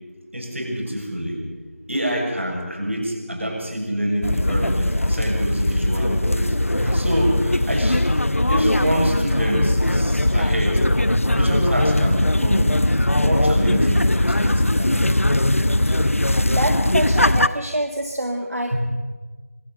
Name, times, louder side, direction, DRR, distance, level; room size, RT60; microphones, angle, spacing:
voice 1, 0.3-1.4 1.9-8.1 8.5-10.8 11.2-12.8 13.1-15.0 18.7-18.8, equal, 60° right, 1 dB, 7.1 m, -26 dB
sound 1, 4.2-17.5, left 1 dB, 65° left, 0.9 m, -20 dB
voice 2, 16.5-18.7, right 1 dB, 80° right, 4 dB, 2.0 m, -26 dB
25.0 x 14.0 x 7.9 m, 1.4 s
figure-of-eight pair, 170°, 8 cm